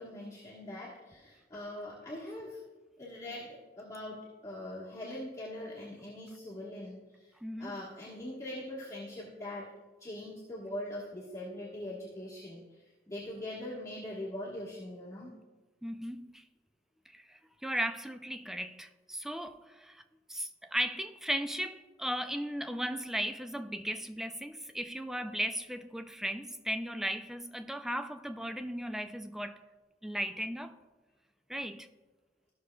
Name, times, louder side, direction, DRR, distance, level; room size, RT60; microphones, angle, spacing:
voice 1, 0.0-2.6 3.0-7.3 7.6-9.7 10.0-15.3, left 1 dB, 20° left, -8 dB, 1.3 m, -42 dB
voice 2, 7.4-7.8 15.8-16.4 17.1-20.0 20.3-29.6 30.0-30.7 31.5-31.9, equal, ahead, 9 dB, 0.3 m, -36 dB
14.0 x 6.3 x 2.2 m, 1.2 s
head